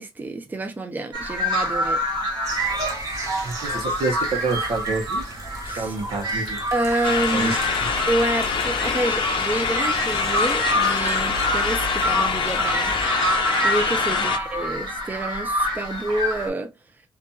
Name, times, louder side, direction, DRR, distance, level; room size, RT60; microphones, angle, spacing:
voice 1, 0.0-2.0 5.6-5.9 6.7-7.6 8.1-13.0 13.6-16.7, right 2 dB, 20° right, 0.5 m, -28 dB
sound 1, 1.1-16.5, equal, 60° right, 1.4 m, -27 dB
sound 2, 2.4-13.1, right 3 dB, 35° right, 0.9 m, -36 dB
voice 2, 3.4-5.2 5.7-6.6 7.3-7.9 14.1-14.3, right 3 dB, 85° right, 0.8 m, -28 dB
sound 3, 7.0-14.4, left 6 dB, 75° left, 0.5 m, -25 dB
2.7 x 2.4 x 2.2 m
cardioid pair, 100°, 9 cm